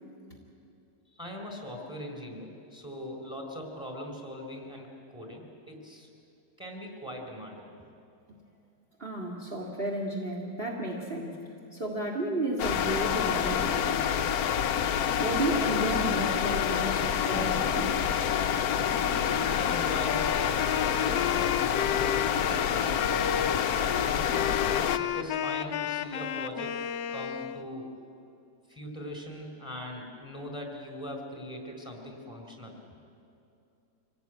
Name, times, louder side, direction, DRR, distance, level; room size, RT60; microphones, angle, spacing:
voice 1, 1.1-6.1 6.6-7.7 19.3-24.3 24.7-26.8 27.1-27.9 28.7-32.8, equal, ahead, 2 dB, 4.0 m, -41 dB
voice 2, 9.0-11.4 11.7-14.1 15.2-17.9, right 1 dB, 30° right, -2 dB, 2.3 m, -32 dB
sound 1, 12.6-25.0, left 8 dB, 65° left, 1.1 m, -27 dB
Wind instrument woodwind instrument, 18.9-27.7, left 9 dB, 90° left, 1.4 m, -33 dB
25.5 x 18.0 x 9.2 m, 2.6 s
omnidirectional pair, 1.9 m